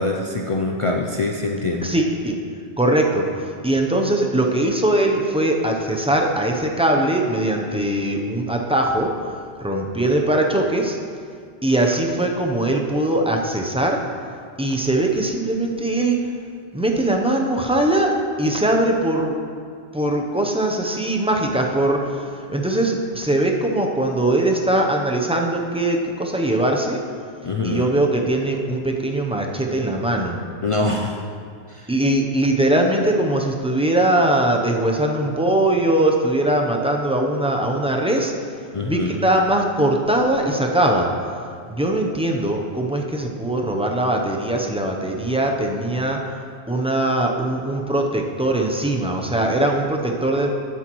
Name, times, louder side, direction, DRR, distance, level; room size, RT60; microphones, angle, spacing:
voice 1, 0.0-1.9 27.4-27.9 30.6-31.2 31.7-31.9 38.7-39.1, left 2 dB, 50° left, 1 dB, 0.4 m, -24 dB
voice 2, 1.8-2.4 2.8-9.1 9.6-11.0 11.6-14.0 14.6-16.2 16.7-19.4 19.9-27.0 27.6-30.4 31.9-38.3 38.8-41.1 41.7-46.2 46.7-50.5, right 1 dB, 5° right, 1 dB, 0.5 m, -21 dB
11.0 x 8.7 x 3.0 m, 2.2 s
omnidirectional pair, 1.1 m